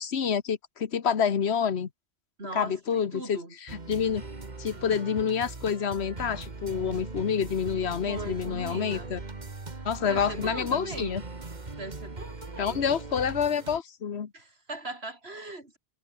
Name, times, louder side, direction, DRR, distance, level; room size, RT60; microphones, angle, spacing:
voice 1, 0.0-1.9 2.5-4.2 4.6-9.2 9.8-11.2 12.6-14.3, left 7 dB, 70° left, 1.5 m, -28 dB
voice 2, 2.4-3.6 8.1-9.1 9.7-11.2 11.8-12.9 14.3-15.8, right 2 dB, 65° right, 4.8 m, -40 dB
sound 1, 3.7-13.8, right 3 dB, 40° right, 2.1 m, -40 dB
omnidirectional pair, 1.1 m